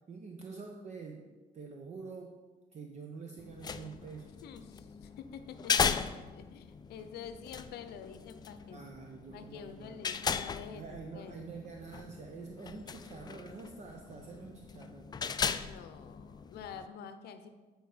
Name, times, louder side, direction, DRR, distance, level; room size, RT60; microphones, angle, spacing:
voice 1, 0.0-2.4 2.7-4.3 8.7-10.1 10.7-15.1, right 5 dB, 40° right, 2 dB, 0.8 m, -47 dB
sound 1, 3.4-16.9, left 6 dB, 25° left, 0.4 m, -38 dB
voice 2, 4.4-8.8 9.3-11.4 15.4-17.5, left 7 dB, 70° left, 9 dB, 0.7 m, -48 dB
9.2 x 4.6 x 5.0 m, 1.3 s
cardioid pair, 110°, 17 cm